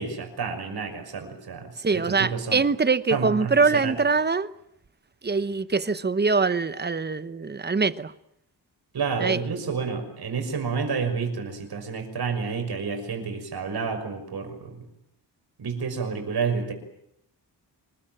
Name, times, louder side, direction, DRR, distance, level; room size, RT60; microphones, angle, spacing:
voice 1, 0.0-2.6 3.1-3.9 8.9-14.8 15.6-16.7, right 5 dB, 65° right, 5.9 m, -30 dB
voice 2, 1.8-4.5 5.2-8.1 9.2-9.4, right 4 dB, 25° right, 1.0 m, -23 dB
26.5 x 21.0 x 9.0 m
wide cardioid pair, 145°, 41 cm